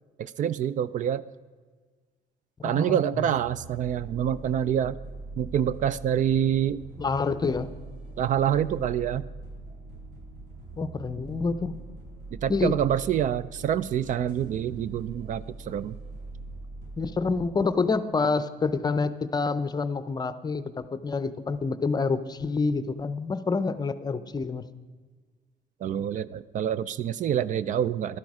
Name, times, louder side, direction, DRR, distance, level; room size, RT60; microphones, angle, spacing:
voice 1, 0.2-1.2 2.6-5.0 5.4-6.8 8.2-9.3 12.3-16.0 25.8-28.2, right 9 dB, 50° right, 17 dB, 0.4 m, -26 dB
voice 2, 2.6-3.3 7.0-7.7 10.8-11.8 12.5-12.8 17.0-24.6, left 4 dB, 25° left, 13 dB, 0.6 m, -27 dB
sound 1, 3.3-17.5, right 2 dB, 80° right, 4.3 m, -43 dB
12.0 x 10.5 x 4.8 m, 1.5 s
cardioid pair, 110°, 17 cm